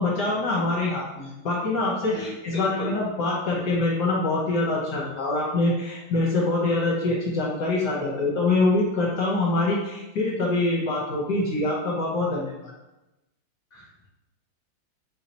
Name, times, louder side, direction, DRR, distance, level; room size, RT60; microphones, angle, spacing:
voice 1, 0.0-12.7, left 2 dB, 60° left, -4 dB, 1.4 m, -25 dB
voice 2, 2.1-3.0 13.7-14.1, left 1 dB, 25° left, -5 dB, 1.3 m, -37 dB
4.2 x 2.8 x 4.1 m, 0.97 s
omnidirectional pair, 2.2 m